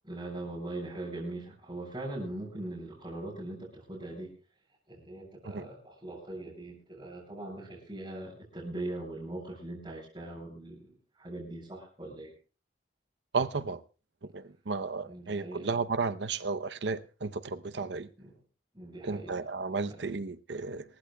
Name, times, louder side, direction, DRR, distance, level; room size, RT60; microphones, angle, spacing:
voice 1, 0.0-4.3 4.9-12.3 15.0-15.7 17.7-17.8 18.2-18.4 18.7-19.5 19.9-20.0, right 2 dB, 25° right, 7.7 m, -41 dB
voice 2, 13.3-13.8 14.3-18.1 19.0-20.8, right 4 dB, 70° right, 0.8 m, -33 dB
27.0 x 15.0 x 2.3 m
head